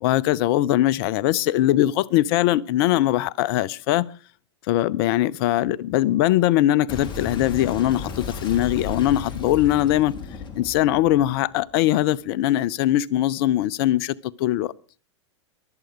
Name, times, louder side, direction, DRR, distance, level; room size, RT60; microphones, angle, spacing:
voice 1, 0.0-4.1 4.7-10.1 10.6-14.7, left 14 dB, 55° left, 0.7 m, -21 dB
Boom, 6.9-12.1, left 4 dB, 30° left, 3.3 m, -34 dB
23.0 x 7.9 x 5.0 m
hypercardioid pair, 110°, 15 cm